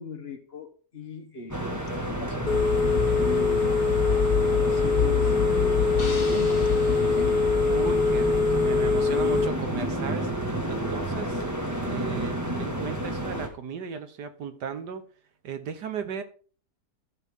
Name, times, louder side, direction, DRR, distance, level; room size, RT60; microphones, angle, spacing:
voice 1, 0.0-2.6 3.1-3.9 4.4-7.4, left 3 dB, 40° left, 1.2 m, -40 dB
sound 1, 1.5-13.5, right 1 dB, 10° right, 1.5 m, -30 dB
Telephone, 2.5-9.5, left 4 dB, 90° left, 0.4 m, -23 dB
sound 2, 6.0-8.3, left 1 dB, 20° left, 3.7 m, -43 dB
voice 2, 7.7-10.3 10.7-11.4 11.9-15.0 15.4-16.2, right 6 dB, 85° right, 1.7 m, -35 dB
15.0 x 6.1 x 3.7 m
omnidirectional pair, 1.7 m